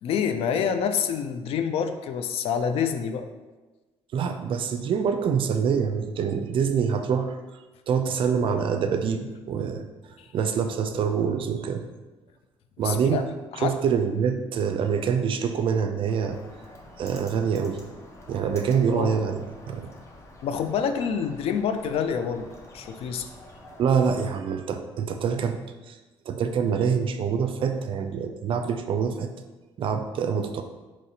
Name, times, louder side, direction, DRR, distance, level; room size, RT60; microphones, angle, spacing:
voice 1, 0.0-3.3 10.2-10.3 12.8-13.2 13.5-13.8 18.9-19.1 20.4-22.5 22.7-23.3, left 7 dB, 70° left, 8 dB, 0.4 m, -27 dB
voice 2, 4.1-7.4 7.9-9.8 10.3-11.9 12.8-13.2 13.6-16.4 17.0-17.8 18.3-19.9 23.8-26.0 26.3-29.3 29.8-30.6, right 6 dB, 55° right, 7 dB, 0.4 m, -25 dB
Bird, 16.1-24.3, left 1 dB, 25° left, 0.6 m, -48 dB
4.1 x 3.1 x 2.7 m, 1.2 s
cardioid pair, 90°, 10 cm